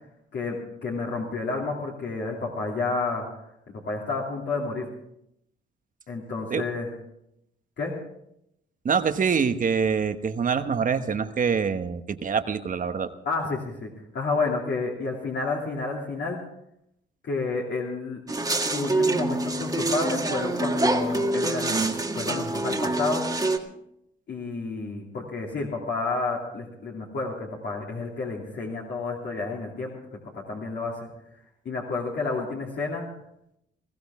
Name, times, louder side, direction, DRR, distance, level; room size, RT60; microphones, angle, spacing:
voice 1, 0.3-3.3 3.7-4.9 6.1-6.9 7.8-7.9 13.2-16.4 17.2-18.2 18.7-21.9 22.1-23.3 24.3-30.0 30.3-31.1 31.6-33.1, left 3 dB, 60° left, -3 dB, 2.9 m, -30 dB
voice 2, 8.8-13.1, right 6 dB, 40° right, 9 dB, 1.1 m, -25 dB
sound 1, 18.3-23.6, right 2 dB, 20° right, 1.7 m, -26 dB
20.5 x 15.5 x 3.6 m, 0.78 s
cardioid pair, 90°, 20 cm